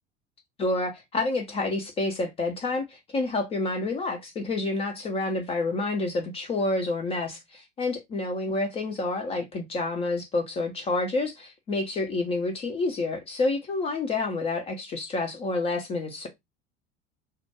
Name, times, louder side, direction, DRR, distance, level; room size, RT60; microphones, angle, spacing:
voice 1, 0.6-16.3, left 2 dB, 20° left, 0.3 m, -28 dB
2.2 x 2.1 x 2.7 m
figure-of-eight pair, 70°, 34 cm